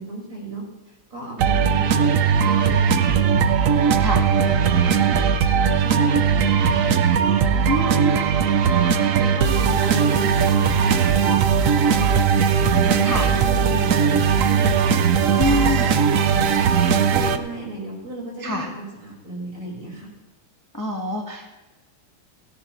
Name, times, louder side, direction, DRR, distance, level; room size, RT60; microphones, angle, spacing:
voice 1, 0.0-2.1 2.4-3.4 3.7-4.0 4.4-5.3 5.6-8.2 8.6-12.2 12.7-14.9 15.3-16.7 17.1-20.1, right 1 dB, 55° right, -3 dB, 5.7 m, -34 dB
sound 1, 1.4-17.4, right 7 dB, 90° right, 0.7 m, -19 dB
voice 2, 7.7-8.1 13.0-13.4 15.3-15.9 18.4-18.7 20.7-21.5, equal, 10° left, 1 dB, 1.0 m, -25 dB
17.5 x 15.5 x 3.1 m, 1.1 s
omnidirectional pair, 2.4 m